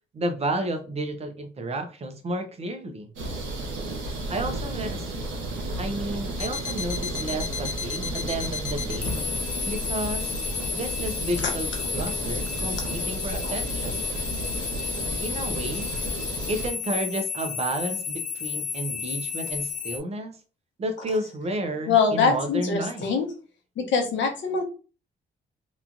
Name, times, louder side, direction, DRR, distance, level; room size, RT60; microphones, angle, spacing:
voice 1, 0.1-3.1 4.3-5.1 5.8-9.2 9.7-10.3 10.7-14.1 15.2-15.9 16.5-20.4 20.8-23.1, right 1 dB, 30° right, 6 dB, 0.6 m, -31 dB
sound 1, 3.2-16.7, right 1 dB, 90° right, 1.0 m, -33 dB
sound 2, 6.4-20.0, left 6 dB, 40° left, 0.4 m, -32 dB
voice 2, 21.9-23.3 23.9-24.6, left 5 dB, 70° left, 3 dB, 0.8 m, -23 dB
3.0 x 2.3 x 2.6 m, 0.35 s
cardioid pair, 140°, 20 cm